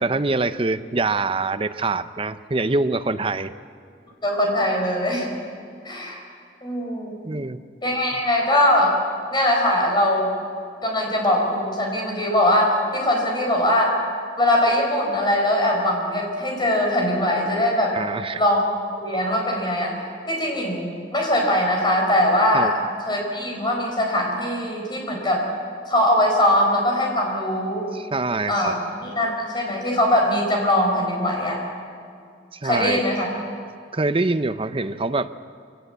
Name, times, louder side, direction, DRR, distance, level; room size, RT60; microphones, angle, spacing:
voice 1, 0.0-3.5 7.2-7.6 17.9-18.4 22.5-22.7 27.9-28.7 32.5-33.0 33.9-35.3, right 3 dB, 30° right, 10 dB, 0.7 m, -24 dB
voice 2, 4.2-5.4 5.8-6.2 6.6-7.2 7.8-8.9 9.3-10.3 10.8-13.9 14.4-18.0 18.4-18.6 19.0-20.0 20.3-22.7 23.1-25.4 25.9-27.9 28.5-28.7 29.0-31.6 32.6-33.3, left 1 dB, 25° left, 0 dB, 4.9 m, -21 dB
24.5 x 18.0 x 8.1 m, 2.3 s
head